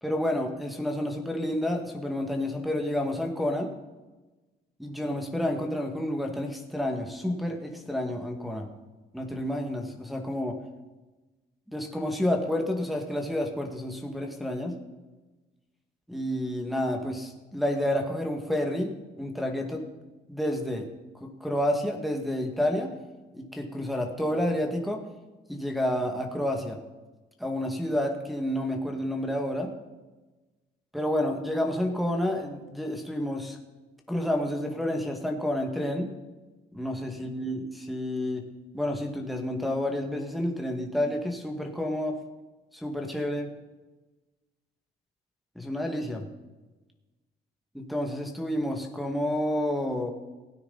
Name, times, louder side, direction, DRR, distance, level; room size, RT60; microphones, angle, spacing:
voice 1, 0.0-3.7 4.8-8.7 9.1-10.6 11.7-14.8 16.1-19.8 20.3-20.9 21.2-22.9 23.3-25.1 25.5-26.8 27.4-29.7 30.9-33.6 34.1-36.1 36.7-38.5 38.7-42.2 42.7-43.5 45.6-46.3 47.7-50.1, left 1 dB, ahead, 1 dB, 2.0 m, -29 dB
16.5 x 9.5 x 4.1 m, 1.2 s
cardioid pair, 90°, 20 cm